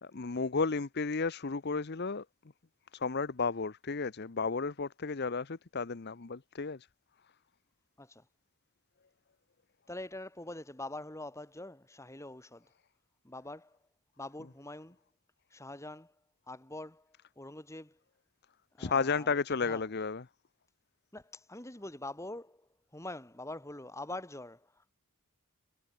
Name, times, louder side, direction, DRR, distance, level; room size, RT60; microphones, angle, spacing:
voice 1, 0.0-2.2 2.9-6.9 18.8-20.2, left 4 dB, 50° left, 0.8 m, -33 dB
voice 2, 9.9-12.7 13.2-13.8 14.2-15.0 15.5-16.2 16.5-18.0 18.7-19.3 19.6-19.9 21.1-24.9, left 2 dB, 15° left, 2.1 m, -44 dB
head